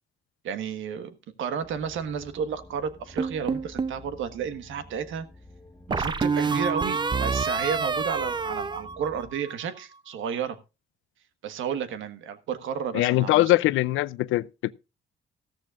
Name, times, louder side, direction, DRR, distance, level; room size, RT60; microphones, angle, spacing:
voice 1, 0.4-5.3 5.9-10.6 11.4-13.4, right 7 dB, 80° right, 1.4 m, -32 dB
sound 1, 1.6-9.3, left 1 dB, 15° left, 1.2 m, -50 dB
sound 2, 3.2-4.0 5.9-9.5, right 4 dB, 20° right, 0.6 m, -27 dB
voice 2, 12.9-14.7, left 17 dB, 90° left, 0.5 m, -22 dB
14.5 x 13.5 x 2.4 m
cardioid pair, 90°, 20 cm